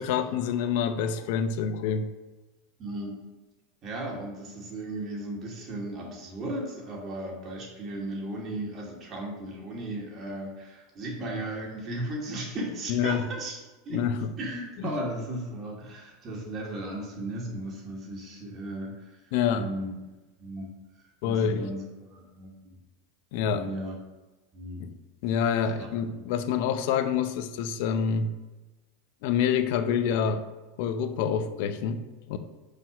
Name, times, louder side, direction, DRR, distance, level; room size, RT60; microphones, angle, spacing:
voice 1, 0.0-2.1 12.9-13.3 13.9-14.3 14.8-14.9 19.3-19.7 21.2-21.7 23.3-23.7 24.8-24.9 25.2-28.3 29.2-30.4 30.8-32.4, left 7 dB, 65° left, 9 dB, 0.7 m, -27 dB
voice 2, 2.8-3.1 3.8-14.1 14.4-19.2 19.5-19.9 20.4-20.7 21.2-22.6 23.5-23.9 24.5-24.9 25.8-26.3, right 1 dB, 35° right, -1 dB, 2.5 m, -36 dB
5.6 x 5.0 x 6.2 m, 1.1 s
hypercardioid pair, 110°, 0 cm